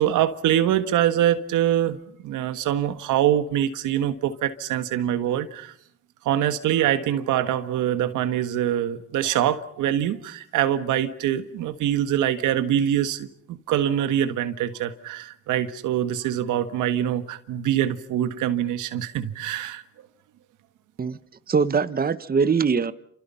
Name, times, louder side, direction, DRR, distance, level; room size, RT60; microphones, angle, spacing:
voice 1, 0.0-2.0 2.2-5.7 6.2-19.8, right 11 dB, 85° right, 1.6 m, -24 dB
voice 2, 21.5-22.9, right 5 dB, 30° right, 1.1 m, -22 dB
29.0 x 27.5 x 5.7 m
cardioid pair, 90°, 30 cm